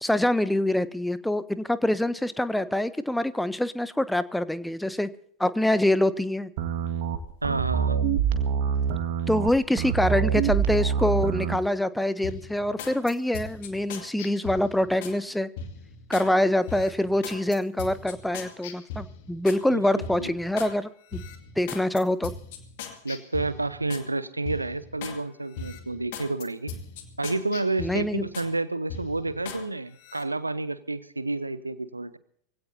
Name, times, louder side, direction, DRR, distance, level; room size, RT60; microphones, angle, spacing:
voice 1, 0.0-5.1 5.4-6.5 9.3-15.5 16.1-21.2 21.6-22.3 27.8-28.3, left 1 dB, 5° left, 15 dB, 0.7 m, -25 dB
sound 1, 6.6-11.6, right 7 dB, 50° right, 1.8 m, -25 dB
voice 2, 7.4-8.0 19.7-19.8 20.2-20.3 23.0-26.7 27.2-32.2, right 2 dB, 80° right, 16 dB, 0.8 m, -30 dB
sound 2, 12.2-15.2 15.6-16.3 16.7-19.6 20.0-20.7 21.1-24.1 24.5-25.2 25.5-28.5 28.9-29.6 30.0-30.2, left 5 dB, 50° left, 2.3 m, -39 dB
23.5 x 16.5 x 2.7 m, 0.65 s
figure-of-eight pair, 90°, 0 cm